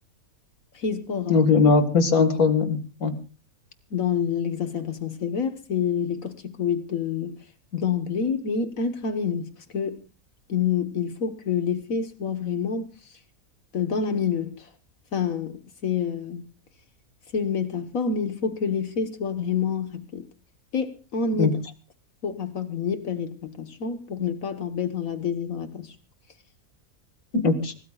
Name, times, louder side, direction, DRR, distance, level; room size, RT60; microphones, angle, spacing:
voice 1, 0.7-1.5 3.9-7.4 7.7-10.0 10.5-13.2 13.7-14.7 15.1-16.4 17.3-20.2 20.7-21.6 22.2-25.9, left 6 dB, 70° left, 1.7 m, -28 dB
voice 2, 1.3-3.1 21.4-21.5 27.4-27.7, left 4 dB, 90° left, 2.2 m, -20 dB
25.0 x 18.0 x 2.4 m
omnidirectional pair, 1.5 m